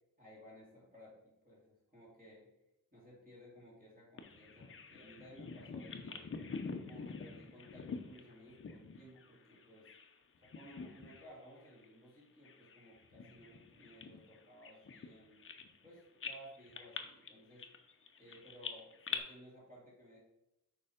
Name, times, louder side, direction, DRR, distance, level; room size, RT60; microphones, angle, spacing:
voice 1, 0.2-2.5 2.9-6.3 6.9-9.9 10.4-15.4 15.8-17.7 18.2-20.2, equal, 25° right, -5 dB, 2.8 m, -57 dB
Bird vocalization bird call bird song, 4.2-10.1 10.4-11.3 11.6-11.8 12.4-15.9 16.2-19.2, left 5 dB, 40° left, 0.7 m, -46 dB
6.8 x 4.8 x 5.0 m, 0.89 s
wide cardioid pair, 140°, 34 cm